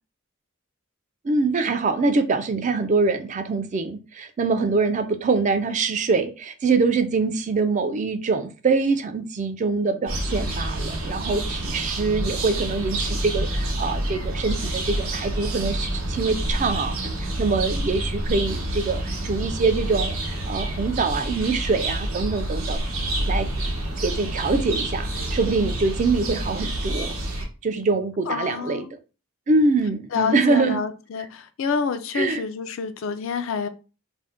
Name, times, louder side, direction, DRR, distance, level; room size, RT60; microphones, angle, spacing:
voice 1, 1.2-20.2 20.5-22.8 23.3-23.5 24.0-27.1 27.6-28.9 29.5-30.8 32.1-32.4, right 4 dB, 35° right, 9 dB, 0.3 m, -24 dB
sound 1, 10.1-27.5, right 1 dB, 85° right, 0.8 m, -28 dB
voice 2, 28.3-28.9 30.1-33.7, left 6 dB, 70° left, 11 dB, 0.3 m, -28 dB
2.5 x 2.1 x 3.4 m, 0.33 s
head